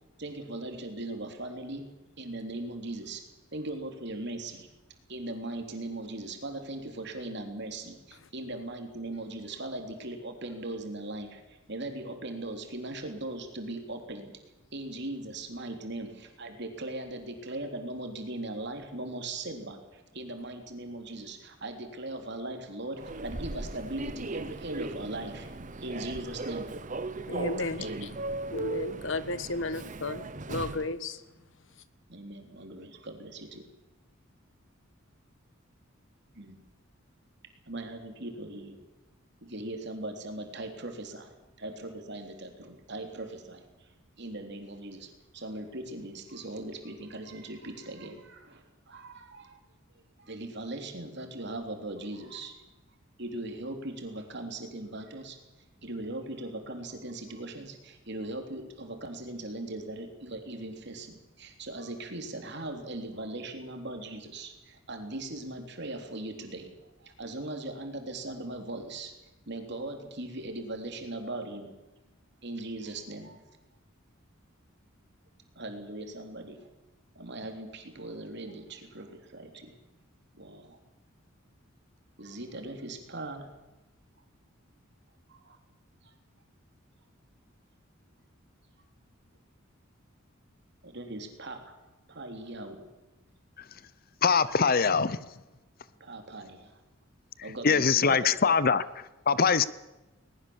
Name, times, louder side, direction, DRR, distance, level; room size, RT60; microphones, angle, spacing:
voice 1, 0.2-1.9 2.2-3.2 3.5-4.7 5.1-14.4 14.7-25.5 25.8-26.8 27.8-28.2 32.1-33.7 36.3-36.6 37.7-38.8 39.4-41.3 41.6-43.9 44.2-49.6 50.2-52.6 53.2-55.4 55.8-69.1 69.5-71.7 72.4-73.4 75.5-76.7 77.1-79.8 80.3-80.8 82.2-83.5 85.3-85.6 86.0-86.1 90.8-91.8 92.1-92.9 96.0-96.8 97.4-98.8, right 2 dB, 55° right, 3.4 m, -39 dB
Human voice / Subway metro underground, 23.0-30.9, right 2 dB, 40° right, 0.9 m, -37 dB
voice 2, 27.3-28.1 28.5-31.2, left 2 dB, 65° left, 1.3 m, -34 dB
voice 3, 94.2-95.2 97.6-98.8 99.3-99.6, left 5 dB, 45° left, 0.7 m, -22 dB
20.5 x 20.0 x 7.2 m
head